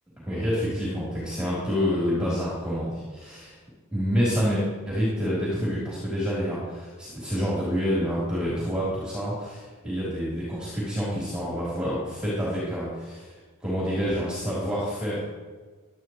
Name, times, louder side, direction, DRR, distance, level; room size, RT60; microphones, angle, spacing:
voice 1, 0.2-3.6 3.9-13.3 13.6-15.2, equal, 5° right, -8 dB, 3.9 m, -28 dB
17.0 x 12.0 x 3.2 m, 1.4 s
head